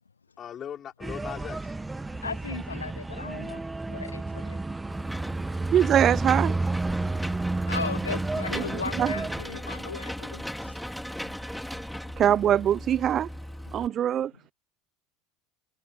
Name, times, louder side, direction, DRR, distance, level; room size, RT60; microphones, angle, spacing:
voice 1, 0.4-1.7 8.5-8.8, left 9 dB, 40° left, 3.7 m, -39 dB
sound 1, 1.0-9.4, right 2 dB, 15° right, 1.0 m, -31 dB
voice 2, 2.2-3.6 3.9-4.6 7.7-10.7, left 5 dB, 85° left, 0.5 m, -36 dB
Engine / Mechanisms, 4.9-13.9, equal, 5° left, 3.9 m, -37 dB
voice 3, 5.7-6.5 8.5-9.2 12.2-13.3 13.7-14.3, right 10 dB, 40° right, 0.4 m, -23 dB
figure-of-eight pair, 70°, 0 cm